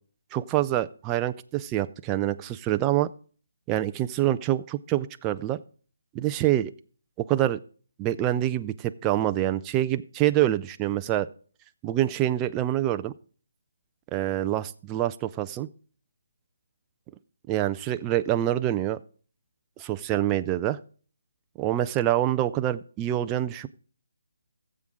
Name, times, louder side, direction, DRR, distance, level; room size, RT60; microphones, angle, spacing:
voice 1, 0.3-3.1 3.7-5.6 6.1-6.7 7.2-7.6 8.0-11.3 11.8-13.1 14.1-15.7 17.5-19.0 19.8-20.8 21.6-23.7, right 13 dB, 15° right, 10 dB, 0.4 m, -26 dB
14.5 x 7.6 x 3.6 m, 0.41 s
hypercardioid pair, 165°, 0 cm